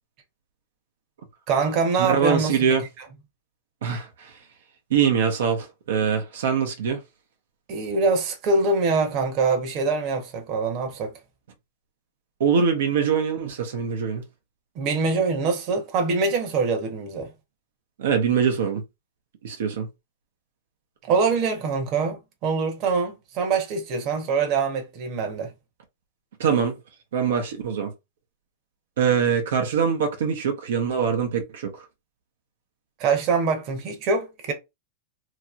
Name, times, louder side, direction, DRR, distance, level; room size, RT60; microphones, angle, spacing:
voice 1, 1.5-2.7 7.7-11.1 14.7-17.3 21.1-25.5 33.0-34.5, right 4 dB, 40° right, 1.0 m, -24 dB
voice 2, 2.0-2.8 3.8-4.4 4.9-7.0 12.4-14.2 18.0-18.8 19.4-19.9 26.4-26.8 27.1-27.9 29.0-31.8, right 7 dB, 75° right, 0.8 m, -23 dB
2.9 x 2.8 x 2.5 m
hypercardioid pair, 135°, 0 cm